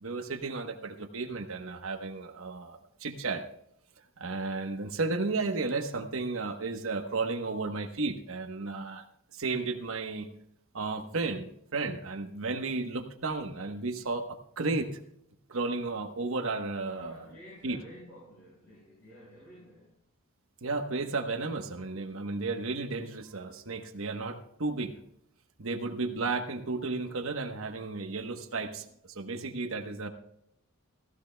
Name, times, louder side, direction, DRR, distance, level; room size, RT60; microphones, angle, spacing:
voice 1, 0.0-3.4 4.2-9.0 9.3-10.3 10.7-15.0 15.5-17.2 17.6-17.8 20.6-25.0 25.6-30.1, right 3 dB, 65° right, 6 dB, 1.1 m, -33 dB
voice 2, 16.8-20.0, left 1 dB, 60° left, -5 dB, 5.0 m, -51 dB
16.0 x 15.5 x 2.2 m, 0.73 s
head